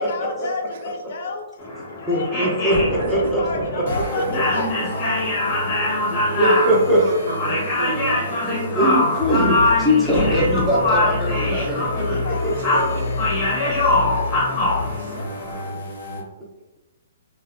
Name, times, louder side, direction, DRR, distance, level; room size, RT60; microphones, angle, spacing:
voice 1, 0.0-1.4 2.0-5.3 11.9-14.6, left 3 dB, 55° left, 3 dB, 0.5 m, -32 dB
sound 1, 1.6-15.7, left 2 dB, 30° left, 0.8 m, -23 dB
voice 2, 2.1-4.4 6.1-7.0 8.5-12.5, equal, ahead, -6 dB, 0.6 m, -21 dB
voice 3, 3.0-3.9 6.3-8.2 12.5-13.3 14.8-15.5, right 4 dB, 55° right, 4 dB, 0.4 m, -32 dB
sound 2, 3.9-16.2, left 2 dB, 75° left, 0.8 m, -30 dB
2.4 x 2.1 x 2.5 m, 1.0 s
hypercardioid pair, 160°, 0 cm